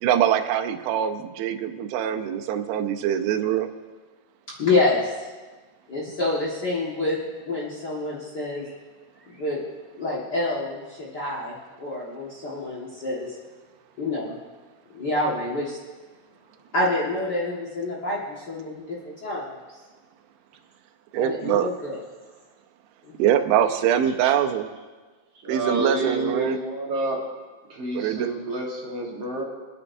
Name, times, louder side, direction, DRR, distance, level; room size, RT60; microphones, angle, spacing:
voice 1, 0.0-3.7 21.1-21.7 23.2-24.7 25.5-26.6 27.9-28.3, right 9 dB, 80° right, 6 dB, 2.4 m, -23 dB
voice 2, 4.6-5.1 5.9-7.2 7.4-8.7 9.3-9.6 9.9-13.3 14.0-14.3 14.9-15.8 16.7-19.6 21.2-22.0 23.0-23.1, left 2 dB, 65° left, -6 dB, 1.0 m, -27 dB
voice 3, 25.3-27.2 27.7-29.4, right 2 dB, 55° right, -3 dB, 1.8 m, -29 dB
25.5 x 9.7 x 2.7 m, 1.3 s
omnidirectional pair, 4.7 m